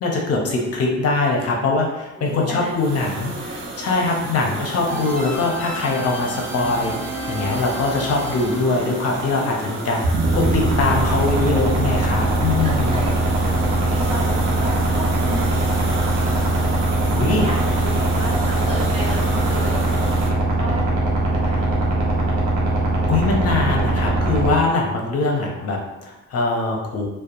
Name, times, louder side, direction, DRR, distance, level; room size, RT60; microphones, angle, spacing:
voice 1, 0.0-10.0 10.3-13.0 17.1-17.5 23.1-27.1, left 3 dB, 55° left, 0 dB, 0.6 m, -22 dB
voice 2, 2.2-3.5 4.3-5.0 12.6-13.2 13.6-15.6 15.9-16.7 17.2-22.6, right 1 dB, 20° right, -7 dB, 1.0 m, -34 dB
sound 1, 2.2-20.3, right 2 dB, 40° right, 0.6 m, -32 dB
sound 2, 4.9-9.9, equal, 5° left, 0.6 m, -33 dB
sound 3, 10.0-24.5, right 2 dB, 80° right, 0.7 m, -21 dB
2.6 x 2.2 x 2.4 m, 1.0 s
cardioid pair, 90°, 30 cm